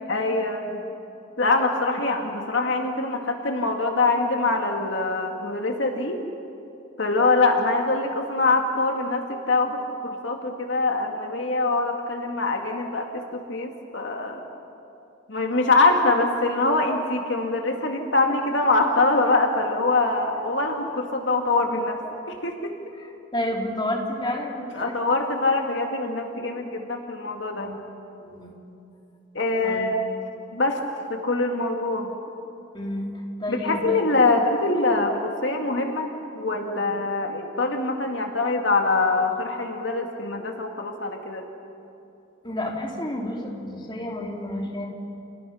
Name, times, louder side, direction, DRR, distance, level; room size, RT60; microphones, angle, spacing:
voice 1, 0.1-0.8 1.4-6.2 7.0-14.4 15.3-22.0 22.3-22.7 24.8-27.7 29.3-30.1 30.5-30.8 31.1-32.1 33.5-36.1 36.3-41.5, left 3 dB, 65° left, 3 dB, 2.1 m, -24 dB
voice 2, 23.3-24.9 27.6-27.8 28.2-28.5 29.6-29.9 32.7-33.1 33.4-34.0 42.4-44.9, left 1 dB, 25° left, 0 dB, 3.2 m, -30 dB
30.0 x 29.5 x 5.7 m, 2.8 s
head